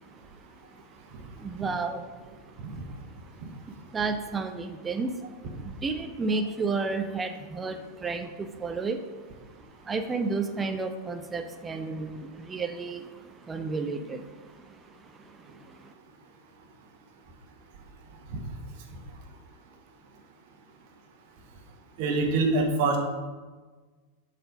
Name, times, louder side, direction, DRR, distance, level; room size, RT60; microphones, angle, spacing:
voice 1, 1.4-2.0 3.7-5.1 5.6-9.0 9.9-14.3 15.8-15.9, right 4 dB, 15° right, 7 dB, 0.5 m, -31 dB
voice 2, 22.0-23.0, right 3 dB, 45° right, 3 dB, 1.2 m, -24 dB
7.8 x 4.2 x 5.1 m, 1.4 s
figure-of-eight pair, 90°, 0 cm